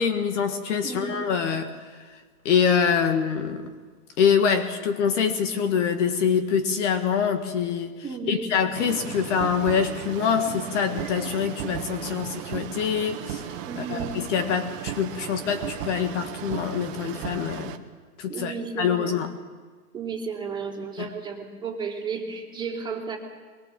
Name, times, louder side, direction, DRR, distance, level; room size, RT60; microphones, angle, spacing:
voice 1, 0.0-1.7 2.5-3.6 4.2-7.9 8.3-13.4 13.8-17.8 18.2-19.3 21.0-21.1, left 7 dB, 50° left, 8 dB, 2.0 m, -25 dB
voice 2, 0.8-1.3 8.0-8.5 13.7-14.1 18.3-19.2 19.9-23.2, right 5 dB, 10° right, -1 dB, 3.4 m, -33 dB
sound 1, 8.8-17.8, right 10 dB, 35° right, 1.6 m, -35 dB
22.5 x 22.0 x 7.6 m, 1.5 s
hypercardioid pair, 140°, 47 cm